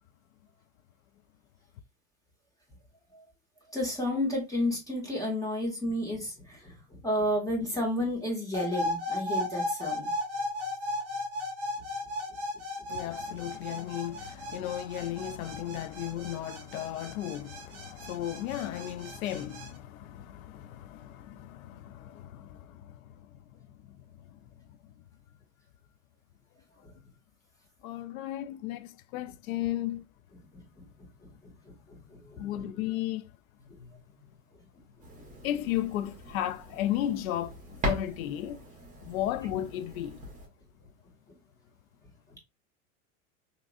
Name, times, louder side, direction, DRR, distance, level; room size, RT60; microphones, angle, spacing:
voice 1, 3.7-10.1 30.5-32.6 33.8-34.0 41.3-41.4, left 1 dB, 10° left, 1.8 m, -32 dB
sound 1, 8.5-19.7, left 1 dB, 35° right, 1.2 m, -36 dB
voice 2, 12.9-24.4 24.7-24.8 27.8-30.0 32.4-33.3 35.4-37.5 37.8-38.6 39.0-40.2, left 12 dB, 75° left, 0.5 m, -35 dB
sound 2, 35.0-40.5, equal, 20° right, 1.5 m, -39 dB
3.6 x 3.0 x 2.4 m
hypercardioid pair, 110°, 42 cm